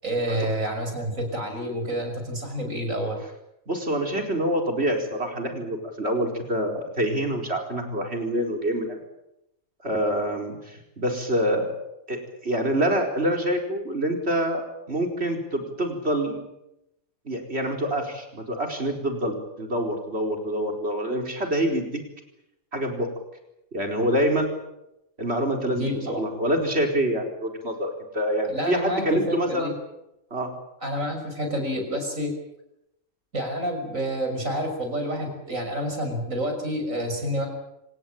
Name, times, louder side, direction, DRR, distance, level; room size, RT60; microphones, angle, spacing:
voice 1, 0.0-3.2 25.8-26.2 28.5-29.7 30.8-32.3 33.3-37.5, equal, 90° right, 4 dB, 6.5 m, -28 dB
voice 2, 3.7-9.0 9.8-11.7 12.1-16.4 17.2-21.9 22.7-23.1 23.7-24.6 25.2-25.9 26.2-29.7 30.3-30.5, right 1 dB, 55° right, 3 dB, 4.8 m, -26 dB
27.0 x 18.0 x 8.9 m, 0.85 s
omnidirectional pair, 1.3 m